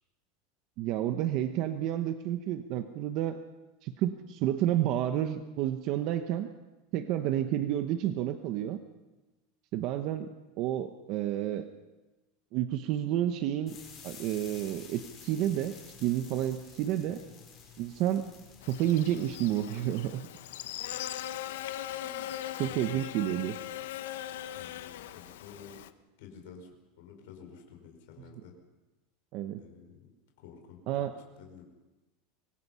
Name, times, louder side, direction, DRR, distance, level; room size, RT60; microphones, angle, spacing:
voice 1, 0.8-3.4 3.8-6.5 6.9-8.8 9.7-10.3 10.6-11.7 12.5-13.8 14.0-17.2 17.8-18.3 18.7-20.2 22.0-22.3 22.6-23.6 28.3-28.4 29.3-29.6 30.9-31.2, right 12 dB, 40° right, 8 dB, 0.9 m, -30 dB
sound 1, 13.7-21.6, left 6 dB, 25° left, 6.6 m, -52 dB
Buzz, 18.6-25.9, left 12 dB, 80° left, 1.0 m, -40 dB
voice 2, 22.6-23.0 23.3-23.4 24.5-25.8 26.2-26.7 27.0-28.5 29.6-30.1 30.4-31.1 31.4-31.6, left 7 dB, 65° left, 2 dB, 5.0 m, -51 dB
25.0 x 22.0 x 5.7 m, 1.1 s
supercardioid pair, 165°, 0 cm